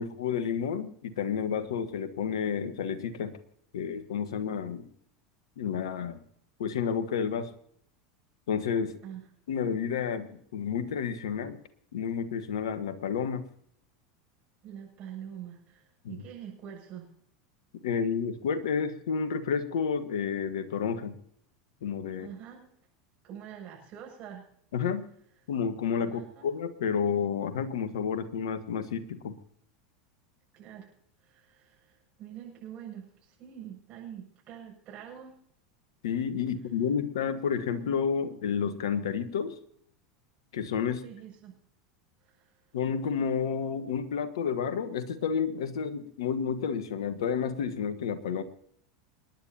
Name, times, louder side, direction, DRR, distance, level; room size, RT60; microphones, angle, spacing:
voice 1, 0.0-3.3 3.7-4.9 5.6-6.2 6.6-7.5 8.5-9.0 9.5-11.6 11.9-13.4 16.0-16.2 17.8-21.2 21.8-22.3 24.7-25.1 25.5-29.4 36.0-39.5 40.5-41.0 42.7-48.4, left 7 dB, 70° left, 11 dB, 1.4 m, -30 dB
voice 2, 14.6-17.1 22.1-22.7 23.2-24.5 26.0-26.5 30.5-30.9 31.2-35.4 41.0-41.5 42.2-42.6, right 9 dB, 45° right, -1 dB, 7.4 m, -45 dB
28.5 x 10.5 x 2.8 m, 0.67 s
hypercardioid pair, 85°, 3 cm